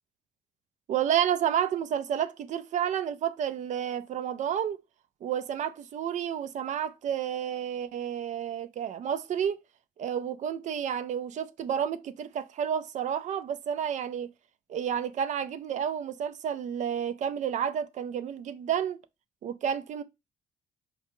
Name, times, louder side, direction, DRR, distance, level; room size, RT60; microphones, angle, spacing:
voice 1, 0.9-4.8 5.2-9.6 10.0-14.3 14.7-19.0 19.4-20.0, right 9 dB, 45° right, 0.4 m, -30 dB
4.6 x 2.2 x 2.9 m
cardioid pair, 110°, 17 cm